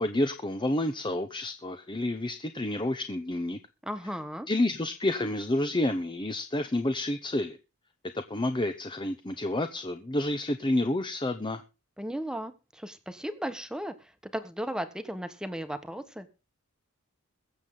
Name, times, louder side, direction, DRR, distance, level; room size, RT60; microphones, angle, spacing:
voice 1, 0.0-3.6 4.5-7.6 8.3-11.6, left 1 dB, 20° left, 0.8 m, -29 dB
voice 2, 3.8-4.5 12.0-13.9 14.2-16.3, equal, 5° right, 1.3 m, -35 dB
22.5 x 7.5 x 3.8 m
head